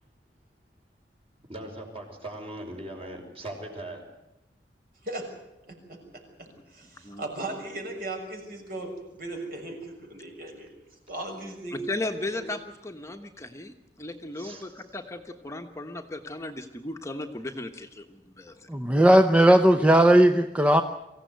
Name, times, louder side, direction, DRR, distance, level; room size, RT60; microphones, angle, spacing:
voice 1, 1.5-4.0 14.4-14.9, right 1 dB, 35° right, 2 dB, 5.0 m, -39 dB
voice 2, 5.0-5.4 5.7-6.0 6.4-10.7 11.1-11.8 12.3-12.5, right 2 dB, 55° right, 2 dB, 6.5 m, -37 dB
voice 3, 11.7-18.7, left 2 dB, 15° left, 4 dB, 1.2 m, -36 dB
voice 4, 18.7-20.8, right 1 dB, 5° right, 7 dB, 0.8 m, -17 dB
24.0 x 16.0 x 9.4 m, 0.93 s
head